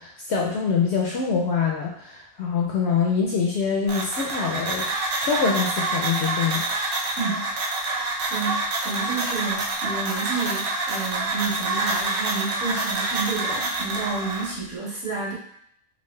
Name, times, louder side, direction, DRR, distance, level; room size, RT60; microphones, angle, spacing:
voice 1, 0.0-4.9 5.2-6.7, left 5 dB, 65° left, -2 dB, 0.7 m, -24 dB
sound 1, 3.9-14.5, right 2 dB, 55° right, 0.7 m, -27 dB
voice 2, 7.2-7.5 8.3-15.3, right 4 dB, 75° right, -7 dB, 1.8 m, -30 dB
3.9 x 2.1 x 3.1 m, 0.68 s
omnidirectional pair, 1.5 m